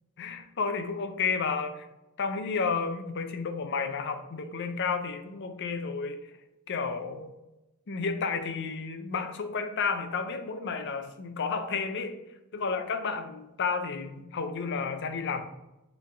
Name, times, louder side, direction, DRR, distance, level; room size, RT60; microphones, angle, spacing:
voice 1, 0.2-1.9 2.2-6.2 6.7-7.3 7.9-12.2 12.5-15.4, left 5 dB, 55° left, 8 dB, 0.5 m, -31 dB
4.6 x 3.3 x 3.4 m, 0.96 s
head